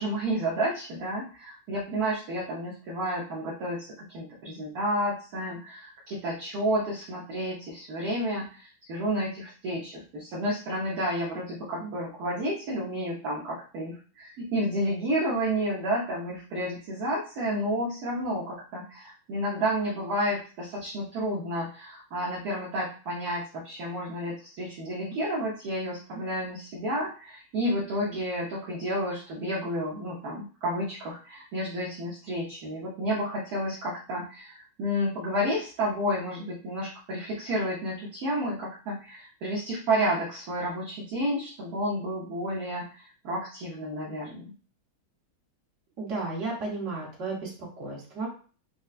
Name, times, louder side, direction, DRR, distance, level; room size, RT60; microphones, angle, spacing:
voice 1, 0.0-44.5, equal, 60° right, -5 dB, 1.1 m, -31 dB
voice 2, 46.0-48.3, right 3 dB, 40° right, -4 dB, 1.3 m, -33 dB
5.4 x 2.2 x 2.4 m, 0.39 s
omnidirectional pair, 2.3 m